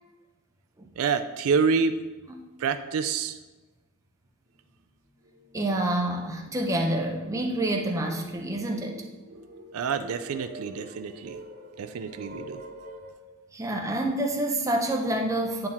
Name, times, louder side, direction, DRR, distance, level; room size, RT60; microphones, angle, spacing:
voice 1, 1.0-2.0 2.6-3.4 9.7-11.4 11.8-12.6, right 5 dB, 75° right, 9 dB, 0.4 m, -27 dB
sound 1, 4.5-4.6 5.0-13.1, right 1 dB, 35° right, 1.0 m, -46 dB
voice 2, 5.5-9.0 13.5-15.7, right 1 dB, 15° right, 1 dB, 0.6 m, -28 dB
8.6 x 4.4 x 3.6 m, 1.2 s
head